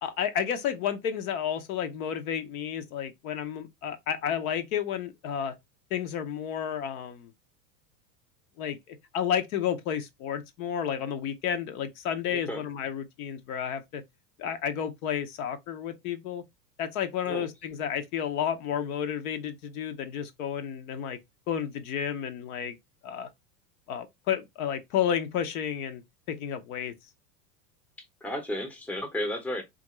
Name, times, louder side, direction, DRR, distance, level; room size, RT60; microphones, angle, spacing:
voice 1, 0.0-5.5 5.9-7.3 8.6-14.0 14.4-16.4 16.8-21.2 21.5-22.7 23.0-23.3 23.9-26.0 26.3-26.9, left 8 dB, 60° left, 0.7 m, -31 dB
voice 2, 12.3-12.6 17.3-17.5 28.0-29.6, left 1 dB, 5° left, 0.7 m, -33 dB
3.5 x 2.5 x 3.0 m
hypercardioid pair, 100°, 48 cm